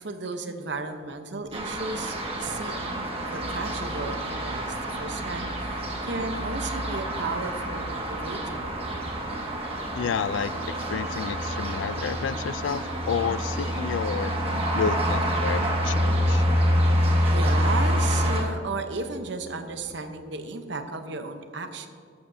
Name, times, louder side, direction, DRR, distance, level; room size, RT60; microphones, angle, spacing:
voice 1, 0.0-8.7 14.6-14.8 17.3-21.9, right 3 dB, 60° right, 7 dB, 0.9 m, -34 dB
sound 1, 1.5-18.4, equal, 30° right, 1.5 m, -27 dB
voice 2, 9.9-10.5 10.9-14.3 14.7-16.4, left 6 dB, 70° left, 17 dB, 0.3 m, -30 dB
14.0 x 12.0 x 2.7 m, 2.2 s
head